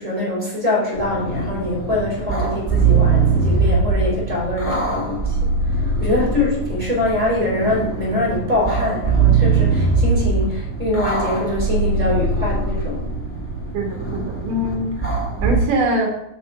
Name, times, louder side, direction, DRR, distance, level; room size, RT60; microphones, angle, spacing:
voice 1, 0.0-5.4 5.7-13.0, left 2 dB, 10° right, -5 dB, 3.5 m, -23 dB
sound 1, 1.0-15.5, right 4 dB, 5° left, 1.1 m, -21 dB
voice 2, 13.7-15.1 15.4-16.1, equal, 85° right, 1 dB, 3.3 m, -23 dB
9.2 x 5.7 x 4.7 m, 0.81 s
omnidirectional pair, 3.8 m